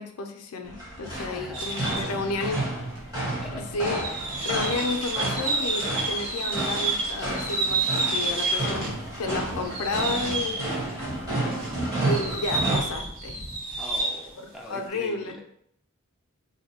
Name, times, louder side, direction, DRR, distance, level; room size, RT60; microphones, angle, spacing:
voice 1, 0.0-2.6 3.2-4.0 4.4-8.9 9.2-10.6 12.1-13.4 14.4-15.4, left 3 dB, 80° left, 5 dB, 0.4 m, -32 dB
sound 1, 0.6-12.8, right 1 dB, 15° right, 0.9 m, -31 dB
voice 2, 1.2-2.5 3.4-4.3 8.4-9.1 10.6-11.0 11.6-12.1 13.8-15.4, equal, ahead, 0 dB, 0.3 m, -43 dB
sound 2, 1.5-2.2 3.0-3.1 3.7-9.0 9.4-11.0 11.4-14.3, right 2 dB, 60° right, 1.1 m, -30 dB
2.6 x 2.1 x 4.0 m, 0.73 s
head